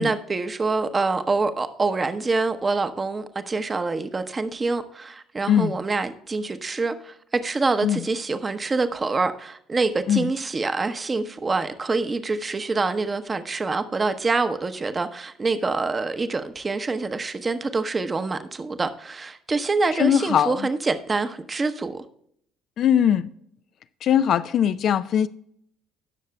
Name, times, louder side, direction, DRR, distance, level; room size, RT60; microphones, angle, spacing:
voice 1, 0.0-22.0, right 3 dB, 25° right, 0.8 m, -26 dB
voice 2, 20.0-20.7 22.8-23.3 24.0-25.3, left 9 dB, 50° left, 0.4 m, -20 dB
18.5 x 6.5 x 2.2 m
figure-of-eight pair, 55°, 0 cm